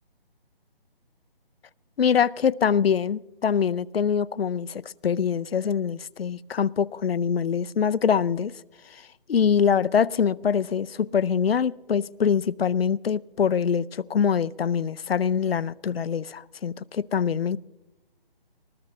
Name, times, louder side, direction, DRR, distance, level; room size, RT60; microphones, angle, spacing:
voice 1, 2.0-8.5 9.3-17.6, left 7 dB, 75° left, 0.6 m, -24 dB
22.0 x 19.5 x 3.2 m
hypercardioid pair, 170°, 30 cm